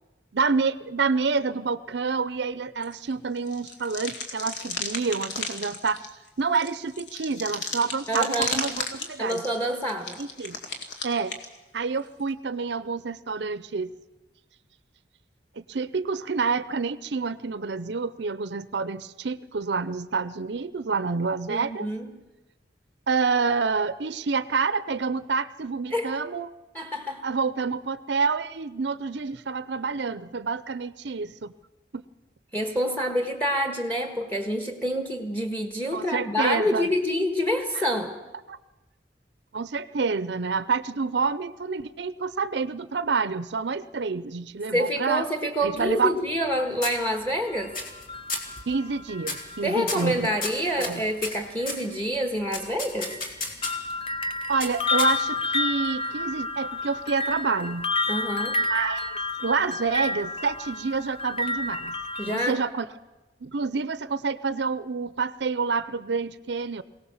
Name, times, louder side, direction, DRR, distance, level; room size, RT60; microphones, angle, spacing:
voice 1, 0.3-6.0 6.4-9.4 10.2-10.6 11.0-11.3 11.7-13.9 15.6-21.9 23.1-26.5 27.2-31.5 31.9-32.0 35.9-36.9 37.8-37.9 38.5-38.6 39.5-45.2 45.6-46.1 48.7-50.3 50.8-51.0 54.5-57.9 58.7-62.0 62.2-62.9 63.4-66.8, right 4 dB, 65° right, 15 dB, 0.6 m, -28 dB
sound 1, 2.8-3.1 3.4-11.6 12.3-12.4, left 3 dB, 65° left, 2.4 m, -34 dB
voice 2, 8.1-8.6 9.2-10.2 21.5-22.1 25.9-26.1 26.7-27.2 32.5-38.1 44.7-47.7 49.6-53.1 58.1-58.6 62.2-62.6, equal, 10° left, 5 dB, 1.6 m, -27 dB
sound 2, 45.6-46.5 46.8-47.4 47.7-48.0 48.3-48.6 49.2-49.5 49.9-51.9 52.5-53.9 54.6-55.4, left 3 dB, 50° left, 2.8 m, -33 dB
sound 3, 47.5-50.6 51.6-51.7 52.5-62.4, left 2 dB, 30° left, 0.8 m, -30 dB
23.0 x 17.5 x 7.2 m, 1.1 s
head